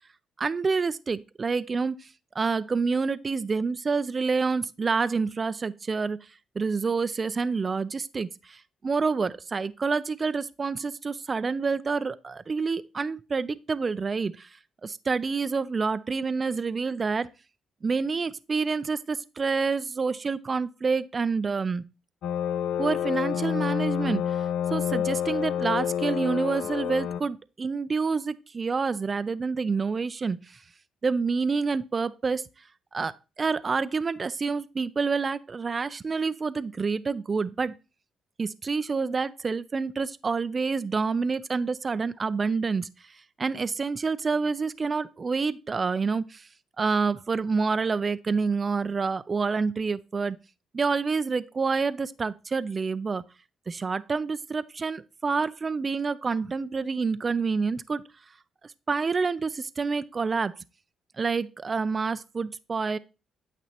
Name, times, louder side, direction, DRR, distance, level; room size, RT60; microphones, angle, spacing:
voice 1, 0.4-2.0 2.4-6.2 6.6-14.5 14.8-17.3 17.8-21.8 22.8-24.4 24.7-30.4 31.0-32.4 32.9-37.7 38.4-42.9 43.4-46.4 46.8-50.4 50.7-53.2 53.7-58.0 58.9-60.5 61.2-63.0, right 4 dB, 35° right, 0.4 m, -28 dB
sound 1, 22.2-27.2, left 9 dB, 75° left, 0.7 m, -28 dB
9.1 x 8.3 x 2.9 m
cardioid pair, 90°, 0 cm